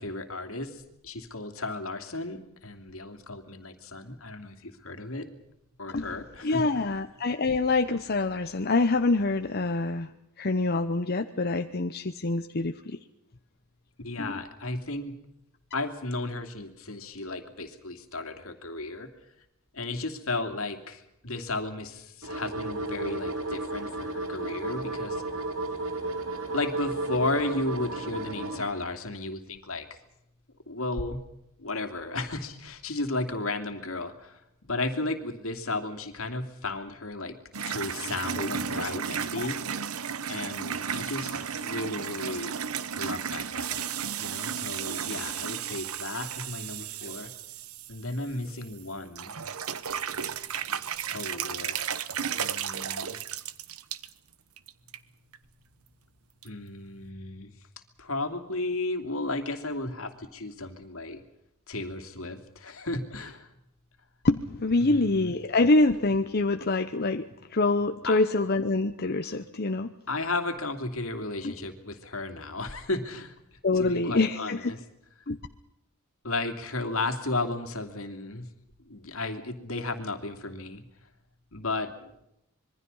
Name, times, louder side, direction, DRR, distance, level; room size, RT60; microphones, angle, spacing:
voice 1, 0.0-5.3 5.8-6.8 14.0-15.2 15.7-19.1 19.7-25.2 26.5-29.9 30.7-31.2 31.6-39.6 40.2-42.5 43.0-43.9 44.2-47.3 47.9-49.4 51.1-51.9 52.4-53.2 56.4-57.5 58.0-61.2 61.7-63.5 64.8-65.4 68.0-68.2 70.1-73.3 73.7-74.8 76.2-78.5 78.8-80.8 81.5-82.1, left 2 dB, 70° left, 7 dB, 2.8 m, -34 dB
voice 2, 6.4-10.1 10.4-13.0 14.2-14.4 38.4-38.5 38.9-39.0 39.3-39.5 64.2-69.9 71.4-71.5 73.6-74.7 75.3-75.4, left 3 dB, 45° left, 7 dB, 0.9 m, -26 dB
sound 1, 22.2-28.6, right 2 dB, 65° right, 3.7 m, -33 dB
sound 2, 37.5-48.8 49.2-54.1 54.6-55.0 55.3-55.4 56.4-56.5, right 8 dB, 90° right, 1.1 m, -34 dB
26.5 x 22.5 x 5.6 m, 0.83 s
head